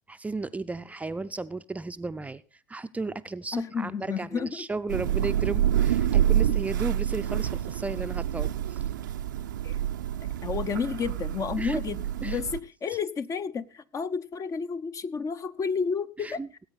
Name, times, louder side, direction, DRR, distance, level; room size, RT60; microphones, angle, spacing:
voice 1, 0.1-2.4 2.7-8.8 11.6-11.8 12.2-12.4 16.2-16.5, right 3 dB, 15° right, 11 dB, 0.5 m, -34 dB
voice 2, 3.5-4.7 9.6-9.8 10.4-16.4, left 6 dB, 35° left, 12 dB, 0.8 m, -31 dB
Thunder / Rain, 4.9-12.6, right 11 dB, 80° right, 0.6 m, -27 dB
18.5 x 8.8 x 4.1 m, 0.34 s
hypercardioid pair, 70°, 10 cm